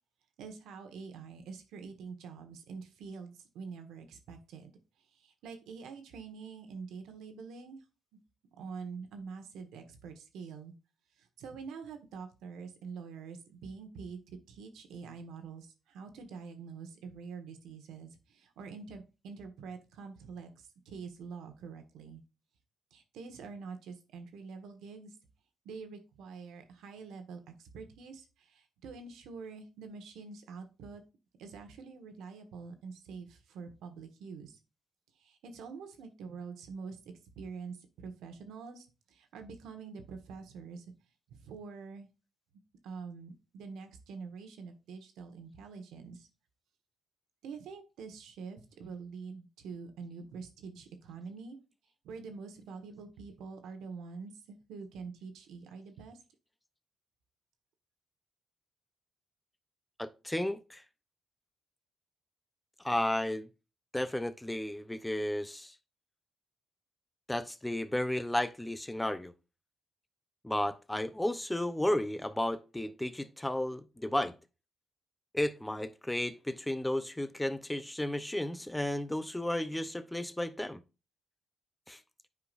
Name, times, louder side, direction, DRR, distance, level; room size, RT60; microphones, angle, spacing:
voice 1, 0.4-4.7 5.1-7.8 8.6-10.7 11.2-22.2 22.9-25.1 25.6-31.0 31.4-34.6 35.2-37.0 37.4-40.9 41.3-42.1 42.8-46.3 47.4-51.6 52.0-56.2, right 5 dB, 85° right, 1.4 m, -46 dB
voice 2, 60.0-60.8 62.8-63.5 63.9-65.7 67.3-69.3 70.4-74.4 75.3-80.8 81.9-82.0, left 1 dB, 10° left, 0.7 m, -33 dB
9.5 x 4.9 x 2.5 m
cardioid pair, 90°, 0 cm